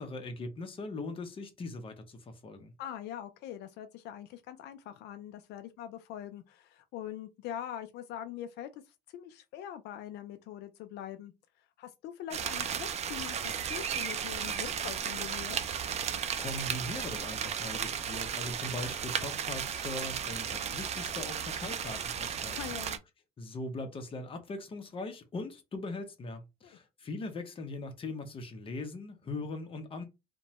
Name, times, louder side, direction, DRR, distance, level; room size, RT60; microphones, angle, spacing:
voice 1, 0.0-2.7 16.4-22.6 23.4-30.0, left 2 dB, 30° left, 0.7 m, -40 dB
voice 2, 2.8-11.3 11.6-15.6 22.5-23.0 26.6-26.8, left 11 dB, 80° left, 0.4 m, -43 dB
sound 1, 12.3-23.0, right 8 dB, 40° right, 0.4 m, -35 dB
2.9 x 2.2 x 2.8 m
cardioid pair, 110°, 17 cm